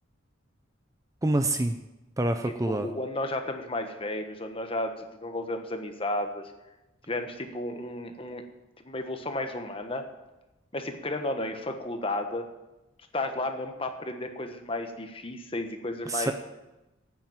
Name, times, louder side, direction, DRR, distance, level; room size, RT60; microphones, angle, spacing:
voice 1, 1.2-1.8 2.2-2.9 16.1-16.3, right 1 dB, 15° right, 8 dB, 0.5 m, -26 dB
voice 2, 2.4-6.5 7.1-8.4 8.8-10.0 10.7-12.5 13.1-16.3, left 1 dB, 30° left, 6 dB, 1.3 m, -33 dB
9.2 x 9.1 x 9.1 m, 1.0 s
head